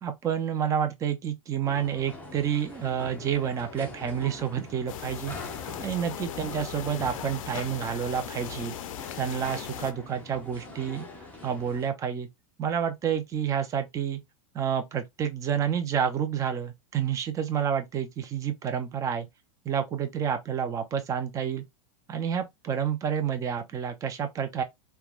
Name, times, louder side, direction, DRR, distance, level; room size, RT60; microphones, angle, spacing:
voice 1, 0.0-5.3 5.8-8.8 9.1-11.1 11.4-12.3 12.6-14.2 14.5-19.3 19.7-21.6 22.1-24.6, right 8 dB, 20° right, 0.4 m, -29 dB
sound 1, 1.7-11.9, left 2 dB, 10° left, 0.8 m, -44 dB
sound 2, 4.9-9.9, left 11 dB, 75° left, 0.4 m, -38 dB
3.1 x 2.2 x 2.3 m
supercardioid pair, 130°, 17 cm